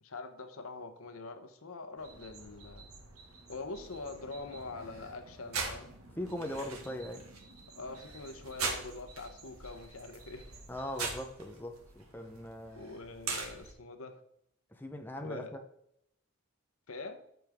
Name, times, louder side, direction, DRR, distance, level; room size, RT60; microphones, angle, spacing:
voice 1, 0.0-2.9 3.5-5.9 7.7-10.5 12.3-12.4 12.8-14.2 15.2-15.5 16.9-17.2, left 3 dB, 75° left, 1.0 m, -44 dB
sound 1, 2.0-13.7, right 4 dB, 85° right, 1.9 m, -43 dB
voice 2, 6.2-7.3 10.7-13.0 14.7-15.6, left 1 dB, 10° left, 0.8 m, -40 dB
14.0 x 5.2 x 3.6 m
head